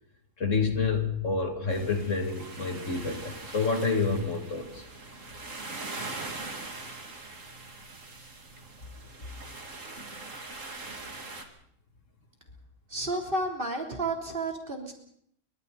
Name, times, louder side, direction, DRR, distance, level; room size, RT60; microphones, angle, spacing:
voice 1, 0.4-4.8, left 4 dB, 55° left, 4 dB, 3.0 m, -28 dB
sound 1, 1.7-11.4, right 3 dB, 55° right, 3.0 m, -42 dB
voice 2, 12.9-14.9, right 2 dB, 35° right, 2 dB, 3.9 m, -31 dB
30.0 x 25.0 x 4.2 m, 0.67 s
omnidirectional pair, 1.6 m